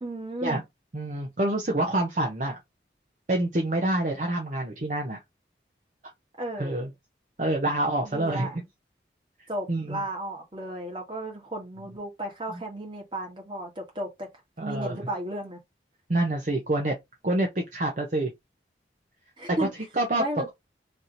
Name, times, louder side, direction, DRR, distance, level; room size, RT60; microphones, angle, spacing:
voice 1, 0.0-0.6 6.4-6.8 8.0-8.6 9.5-14.3 14.6-15.6 19.4-19.7 20.1-20.5, right 1 dB, 30° right, 1.5 m, -34 dB
voice 2, 0.9-2.6 3.3-5.2 6.6-6.9 7.4-8.5 9.7-10.0 12.5-12.6 14.6-15.0 16.1-16.9 17.2-18.3 19.6-19.7 20.0-20.2, right 1 dB, 45° right, 0.7 m, -27 dB
3.3 x 2.8 x 3.8 m
head